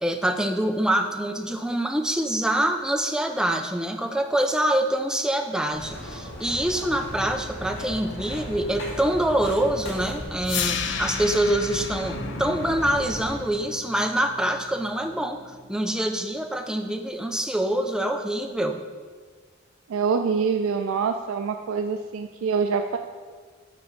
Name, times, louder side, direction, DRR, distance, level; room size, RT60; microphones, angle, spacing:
voice 1, 0.0-18.8, right 1 dB, 5° right, 5 dB, 0.4 m, -25 dB
sound 1, 5.7-13.3, left 1 dB, 80° left, 2.0 m, -37 dB
sound 2, 6.8-16.4, left 1 dB, 25° left, 1.0 m, -45 dB
sound 3, 10.4-16.5, left 7 dB, 60° left, 0.5 m, -34 dB
voice 2, 19.9-23.0, right 5 dB, 80° right, 6 dB, 0.4 m, -25 dB
9.0 x 3.4 x 5.5 m, 1.5 s
head